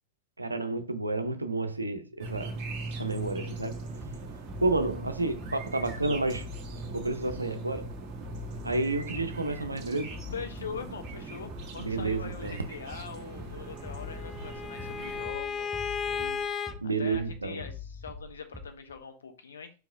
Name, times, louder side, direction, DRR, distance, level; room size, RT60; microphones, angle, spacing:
voice 1, 0.4-2.5 3.0-3.8 4.6-6.5 6.9-7.9 8.6-10.2 11.8-12.6 16.8-17.6, right 2 dB, 80° right, 0.5 m, -30 dB
sound 1, 2.2-15.2, right 3 dB, 40° right, 1.3 m, -40 dB
Bass drum, 4.0-19.0, left 4 dB, 10° right, 0.8 m, -44 dB
voice 2, 10.3-16.5 16.8-19.7, left 6 dB, 70° left, 0.7 m, -42 dB
Bowed string instrument, 13.6-16.7, left 6 dB, 20° left, 0.4 m, -35 dB
4.7 x 3.9 x 2.5 m
figure-of-eight pair, 90°, 0 cm